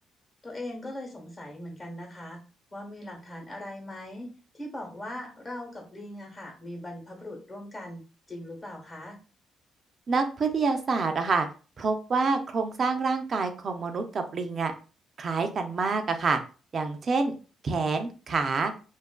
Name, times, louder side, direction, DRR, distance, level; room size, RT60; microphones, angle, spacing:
voice 1, 0.4-2.4 2.7-8.0 8.3-9.2, left 1 dB, 25° left, 1 dB, 1.0 m, -40 dB
voice 2, 10.1-11.5 11.8-14.7 15.2-16.4 16.7-17.3 17.6-18.7, right 4 dB, 45° right, 6 dB, 0.5 m, -27 dB
2.6 x 2.4 x 2.2 m, 0.35 s
cardioid pair, 90°, 0 cm